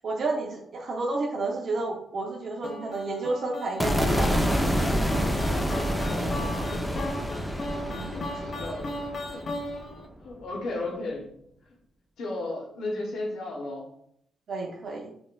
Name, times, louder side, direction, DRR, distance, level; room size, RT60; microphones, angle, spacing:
voice 1, 0.0-4.9 7.8-8.1 8.6-8.7 14.5-15.1, right 2 dB, 55° right, -2 dB, 0.6 m, -31 dB
sound 1, 2.6-10.1, left 1 dB, 50° left, 0.5 m, -37 dB
sound 2, 3.8-10.0, equal, ahead, 0.5 m, -28 dB
voice 2, 5.4-7.5 8.0-9.0 9.3-9.5 10.2-11.3 11.7-11.8 12.2-13.9, left 2 dB, 75° left, 0 dB, 0.9 m, -35 dB
5.2 x 2.5 x 2.2 m, 0.71 s
cardioid pair, 80°, 0 cm